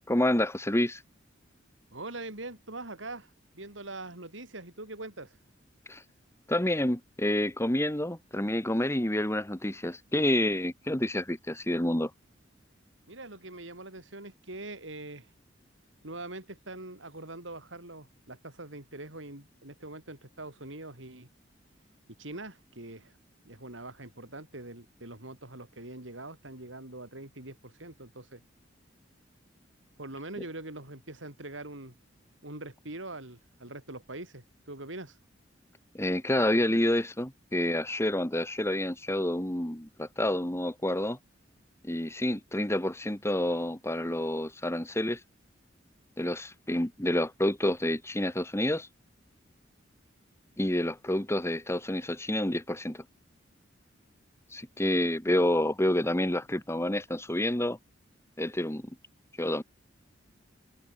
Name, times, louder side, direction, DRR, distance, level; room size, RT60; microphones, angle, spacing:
voice 1, 0.1-1.0 5.9-6.0 6.5-12.1 35.9-41.2 41.8-45.2 46.2-48.9 50.6-53.0 54.5-57.8 58.4-58.9 59.4-59.6, left 1 dB, 15° left, 2.0 m, -28 dB
voice 2, 1.9-5.4 13.1-15.3 16.0-21.3 22.2-23.1 23.4-28.4 30.0-31.9 32.4-35.2, right 2 dB, 80° right, 6.3 m, -43 dB
head